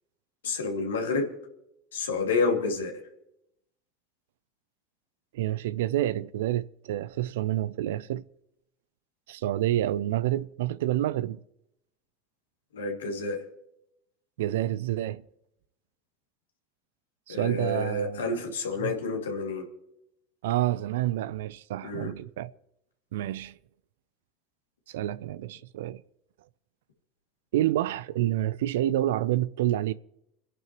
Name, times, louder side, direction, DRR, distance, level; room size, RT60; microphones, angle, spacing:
voice 1, 0.4-1.3 1.9-2.9 12.7-13.4 17.3-19.7 21.8-22.1, left 3 dB, 90° left, 2.5 m, -29 dB
voice 2, 5.3-8.2 9.3-11.4 14.4-15.2 17.3-18.3 18.8-19.0 20.4-22.5 23.1-23.5 24.9-26.0 27.5-29.9, right 13 dB, 75° right, 0.4 m, -28 dB
29.5 x 10.5 x 3.1 m
hypercardioid pair, 85°, 0 cm